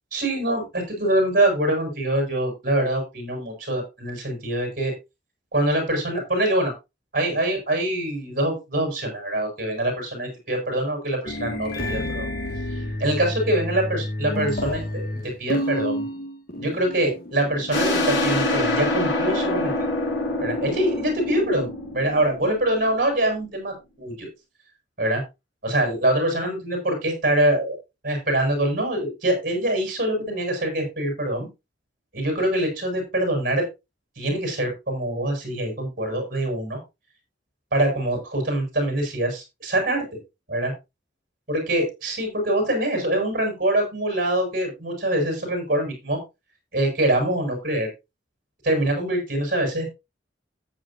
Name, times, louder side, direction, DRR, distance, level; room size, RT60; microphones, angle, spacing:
voice 1, 0.1-4.9 5.5-6.7 7.1-12.3 12.7-16.0 16.6-19.9 20.4-24.3 25.0-25.2 25.6-27.8 28.0-31.5 32.1-33.6 34.2-36.8 37.7-40.1 40.5-40.7 41.5-46.2 46.7-47.9 48.6-49.9, right 1 dB, 50° right, 2 dB, 6.5 m, -24 dB
sound 1, 11.2-17.8, left 1 dB, 55° left, 2.2 m, -30 dB
sound 2, 17.7-23.0, left 1 dB, 70° left, 6.4 m, -25 dB
14.0 x 8.9 x 2.8 m, 0.24 s
head